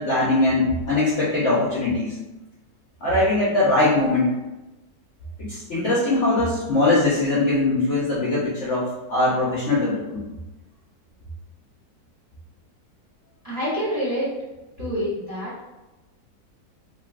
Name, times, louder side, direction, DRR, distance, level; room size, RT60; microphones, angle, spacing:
voice 1, 0.0-2.1 3.0-4.3 5.4-10.2, left 2 dB, 60° left, -8 dB, 0.7 m, -21 dB
voice 2, 13.4-14.3 14.8-15.5, equal, 25° right, -10 dB, 0.9 m, -26 dB
3.1 x 2.4 x 2.3 m, 1.1 s
omnidirectional pair, 1.9 m